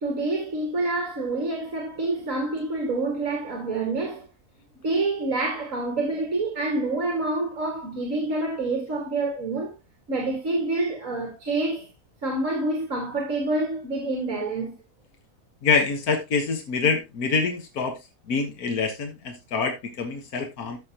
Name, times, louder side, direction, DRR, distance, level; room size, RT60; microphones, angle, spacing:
voice 1, 0.0-4.3 4.8-9.8 10.1-11.9 12.2-14.7, right 2 dB, 55° right, 2.5 m, -27 dB
voice 2, 15.6-18.0 18.3-20.8, left 5 dB, 70° left, 1.9 m, -25 dB
14.0 x 5.7 x 2.9 m
omnidirectional pair, 1.6 m